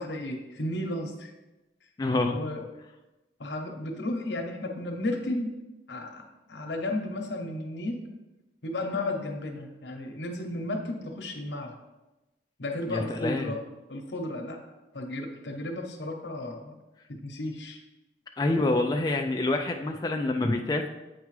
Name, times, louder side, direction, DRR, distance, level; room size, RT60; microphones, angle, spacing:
voice 1, 0.0-1.3 2.2-2.7 3.4-5.6 5.9-8.1 8.6-11.8 12.6-13.6 13.9-14.6 14.9-16.7 17.1-17.8, left 1 dB, 80° left, 4 dB, 0.9 m, -33 dB
voice 2, 2.0-2.4 12.9-13.5 18.4-20.9, left 2 dB, 20° left, 3 dB, 0.3 m, -27 dB
8.1 x 4.7 x 3.2 m, 1.0 s
head